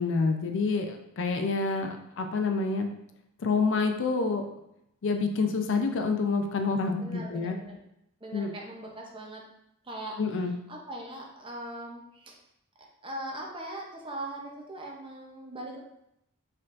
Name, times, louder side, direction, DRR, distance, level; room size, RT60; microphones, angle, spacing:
voice 1, 0.0-2.9 3.4-4.4 5.0-7.6 8.3-8.5 10.2-10.6, left 4 dB, 55° left, 5 dB, 0.4 m, -27 dB
voice 2, 7.0-7.8 8.2-9.5 9.8-10.2 10.7-12.4 13.0-15.8, right 1 dB, 25° right, 0 dB, 0.7 m, -40 dB
4.4 x 3.7 x 2.5 m, 0.80 s
head